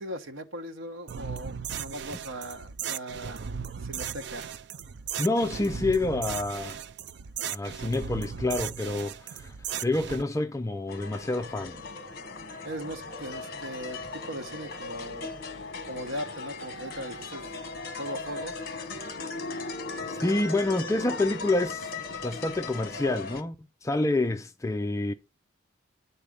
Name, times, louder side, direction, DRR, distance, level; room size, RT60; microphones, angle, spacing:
voice 1, 0.0-3.5 3.8-4.6 12.6-15.4 15.8-17.5 18.0-18.6, equal, 80° right, 1.0 m, -39 dB
sound 1, 1.1-10.2, right 7 dB, 55° right, 0.4 m, -36 dB
voice 2, 5.2-6.8 7.5-9.5 9.8-11.8 20.1-21.9 22.2-23.6 23.8-25.1, left 2 dB, 15° left, 0.3 m, -28 dB
sound 2, 10.9-23.4, left 3 dB, 45° left, 1.1 m, -38 dB
9.4 x 4.1 x 5.0 m
head